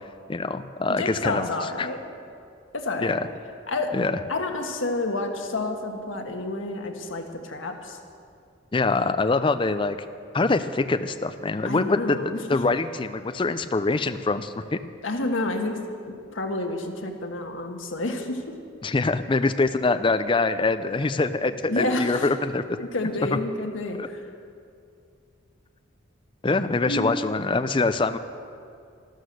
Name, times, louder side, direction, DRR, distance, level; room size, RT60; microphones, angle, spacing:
voice 1, 0.3-1.5 1.8-1.9 3.0-3.3 3.9-4.2 8.7-10.0 10.3-14.8 18.8-22.6 23.9-24.1 26.4-28.2, left 3 dB, 25° left, 10 dB, 0.4 m, -24 dB
voice 2, 0.9-2.0 2.7-3.2 3.7-4.0 4.3-8.0 11.6-12.6 15.0-18.6 21.6-22.3 22.8-24.2 26.8-27.2, left 2 dB, 80° left, 4 dB, 1.5 m, -29 dB
13.0 x 12.5 x 6.5 m, 2.5 s
head